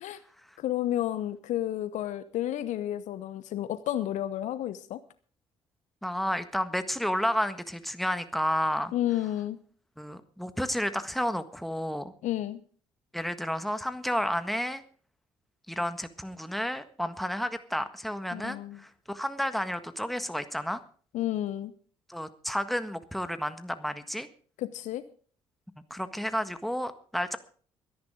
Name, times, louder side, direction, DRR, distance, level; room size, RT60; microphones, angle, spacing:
voice 1, 0.6-5.0 8.9-9.6 12.2-12.6 18.3-18.8 21.1-21.7 24.6-25.0, left 12 dB, 60° left, 14 dB, 0.9 m, -31 dB
voice 2, 6.0-8.9 10.0-12.1 13.1-14.8 15.7-20.8 22.1-24.3 25.9-27.4, equal, ahead, 10 dB, 1.6 m, -31 dB
23.5 x 10.5 x 3.7 m, 0.44 s
figure-of-eight pair, 45°, 14 cm